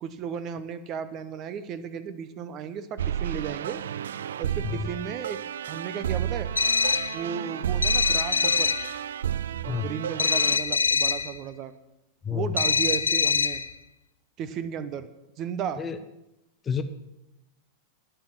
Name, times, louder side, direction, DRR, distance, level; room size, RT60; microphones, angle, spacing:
voice 1, 0.0-3.8 4.4-5.4 5.7-6.5 7.1-8.7 9.6-11.7 12.3-13.6 14.4-15.1 15.4-15.8, right 8 dB, 35° right, 13 dB, 0.8 m, -34 dB
sound 1, 3.0-10.6, right 10 dB, 65° right, 0.3 m, -32 dB
sound 2, 6.5-7.2 7.8-8.9 10.2-11.3 12.6-13.7, left 5 dB, 75° left, 0.6 m, -24 dB
voice 2, 9.7-9.9 12.3-12.4 15.8-16.0 16.7-16.8, left 8 dB, 20° left, 10 dB, 0.9 m, -28 dB
12.5 x 9.1 x 6.0 m, 0.93 s
figure-of-eight pair, 90°, 0 cm